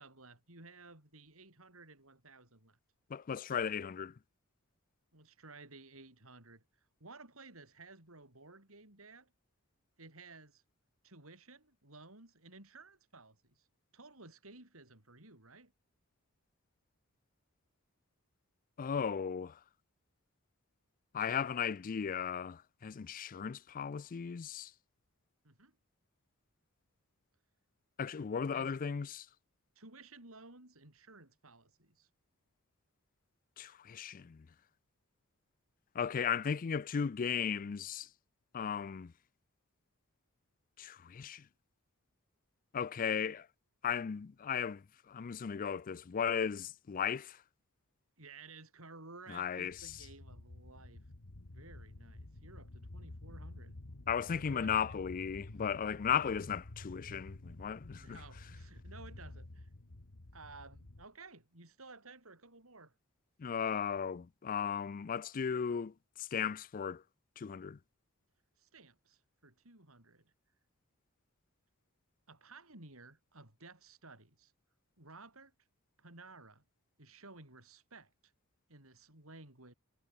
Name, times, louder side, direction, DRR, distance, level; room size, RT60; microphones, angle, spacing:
voice 1, 0.0-2.8 5.1-6.6 7.0-9.3 10.0-10.6 11.0-13.7 13.9-15.7 25.4-25.8 28.5-28.7 29.8-32.1 48.2-51.0 51.4-53.8 54.3-55.0 57.9-59.7 60.3-62.9 68.6-70.3 72.3-74.5 75.0-75.5 76.0-76.6 77.0-78.3 78.7-79.7, right 3 dB, 70° right, 6.3 m, -55 dB
voice 2, 3.1-4.1 18.8-19.6 21.1-24.7 28.0-29.3 33.6-34.5 35.9-38.1 38.5-39.1 40.8-41.4 42.7-43.5 43.8-47.4 49.3-49.8 54.1-58.2 63.4-67.0 67.4-67.8, left 7 dB, 40° left, 0.4 m, -36 dB
sound 1, 49.7-61.1, left 2 dB, 70° left, 1.5 m, -50 dB
head